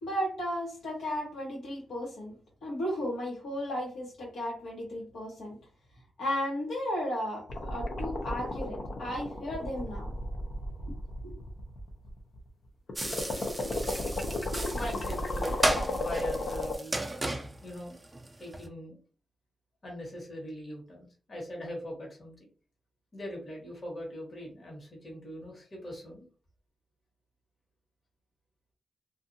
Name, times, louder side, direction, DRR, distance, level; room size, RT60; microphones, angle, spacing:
voice 1, 0.0-2.3 2.6-5.6 6.2-10.1 11.2-11.4, equal, 90° left, -3 dB, 1.3 m, -34 dB
sound 1, 7.5-12.5 12.9-16.7, left 1 dB, 60° left, 0.6 m, -34 dB
sound 2, 13.0-18.7, right 1 dB, 20° right, 0.4 m, -34 dB
voice 2, 14.7-15.6 15.9-17.0 17.6-18.0 18.4-19.0 19.8-22.5 23.1-26.3, equal, 40° left, -2 dB, 1.3 m, -41 dB
2.6 x 2.4 x 2.6 m, 0.37 s
cardioid pair, 85°, 0 cm